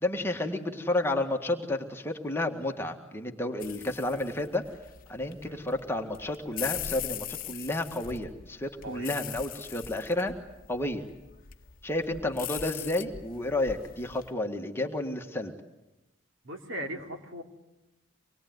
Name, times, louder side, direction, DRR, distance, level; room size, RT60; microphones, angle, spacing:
voice 1, 0.0-4.6 5.1-10.3 10.7-11.0 11.8-15.5, left 1 dB, 10° left, 3 dB, 1.7 m, -31 dB
sound 1, 3.6-14.3, left 10 dB, 45° left, 1.0 m, -41 dB
voice 2, 16.4-17.4, right 1 dB, 70° right, 3 dB, 3.3 m, -38 dB
25.5 x 21.0 x 9.4 m, 0.98 s
head